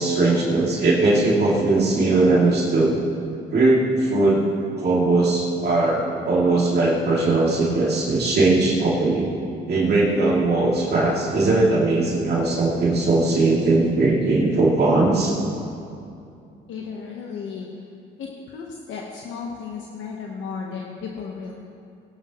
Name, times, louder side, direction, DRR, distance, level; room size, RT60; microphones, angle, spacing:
voice 1, 0.0-3.0 3.5-4.5 4.8-9.4 9.7-15.3, right 2 dB, 55° right, -5 dB, 2.6 m, -19 dB
voice 2, 16.7-17.8 18.2-21.5, left 5 dB, 75° left, -1 dB, 1.1 m, -34 dB
18.0 x 11.5 x 3.1 m, 2.6 s
cardioid pair, 90°, 20 cm